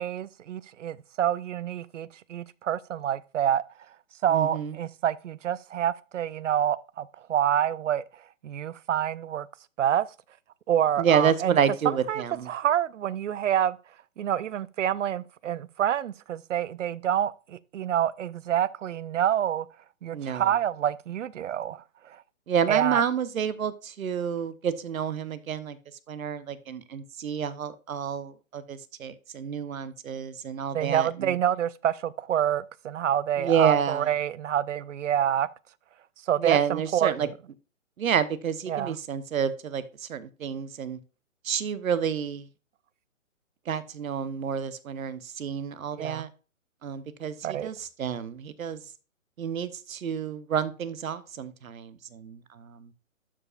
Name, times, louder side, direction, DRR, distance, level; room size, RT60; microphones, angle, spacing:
voice 1, 0.0-3.6 4.2-9.5 9.8-10.1 10.7-11.6 12.1-13.8 14.2-19.7 20.0-22.2 22.7-23.0 30.7-35.5 36.3-37.3 38.7-38.9 46.0-46.3 47.4-47.7, right 10 dB, 65° right, 0.6 m, -27 dB
voice 2, 4.3-4.7 11.0-12.5 20.1-20.5 22.5-25.8 26.1-31.3 33.4-34.1 36.4-37.3 38.0-41.0 41.4-42.5 43.7-46.3 46.8-47.3 47.6-48.8 49.4-52.9, right 7 dB, 80° right, 1.0 m, -29 dB
12.0 x 5.0 x 2.4 m
hypercardioid pair, 150°, 41 cm